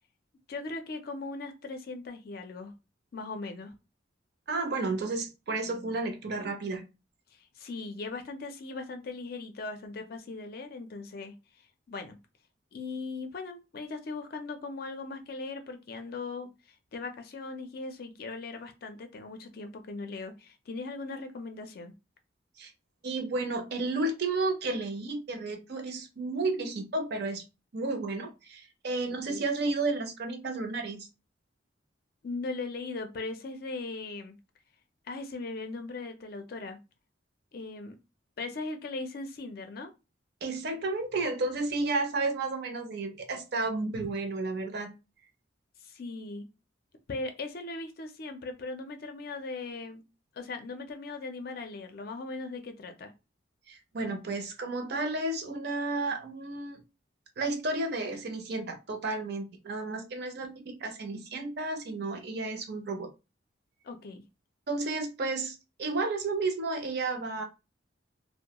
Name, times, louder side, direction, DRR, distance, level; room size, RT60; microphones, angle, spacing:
voice 1, 0.5-2.7 3.1-3.7 7.4-11.3 11.9-12.2 12.7-16.5 16.9-21.9 29.3-29.4 32.2-34.4 35.1-36.8 37.5-38.0 38.4-39.9 45.8-46.5 47.1-50.0 50.3-53.1 63.8-64.2, left 3 dB, 55° left, 7 dB, 0.4 m, -39 dB
voice 2, 4.5-6.8 22.6-22.7 23.0-27.4 27.7-31.1 40.4-44.9 53.7-56.8 57.4-63.1 64.7-67.4, right 3 dB, 60° right, 6 dB, 0.5 m, -32 dB
2.2 x 2.1 x 2.8 m, 0.27 s
head